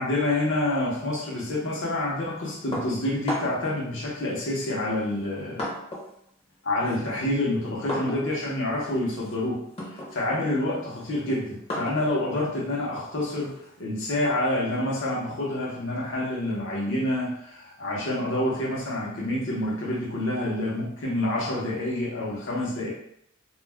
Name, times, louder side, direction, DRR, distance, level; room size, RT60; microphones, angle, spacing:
voice 1, 0.0-5.7 6.6-22.9, left 1 dB, 65° left, -4 dB, 0.8 m, -28 dB
sound 1, 2.7-3.7 4.6-6.2 6.5-13.8, left 1 dB, 30° left, 0.7 m, -37 dB
2.4 x 2.1 x 3.3 m, 0.73 s
head